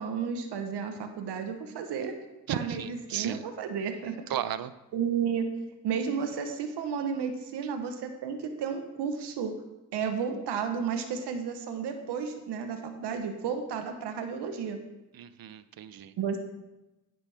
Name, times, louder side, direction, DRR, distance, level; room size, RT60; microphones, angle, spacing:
voice 1, 0.0-2.1 2.5-4.1 4.9-5.4 5.8-9.5 9.9-14.8 16.2-16.4, right 6 dB, 85° right, 6 dB, 1.2 m, -32 dB
voice 2, 2.5-3.4 4.3-4.7 15.2-16.1, right 10 dB, 60° right, 14 dB, 0.7 m, -34 dB
10.0 x 10.0 x 3.5 m, 1.0 s
cardioid pair, 70°, 39 cm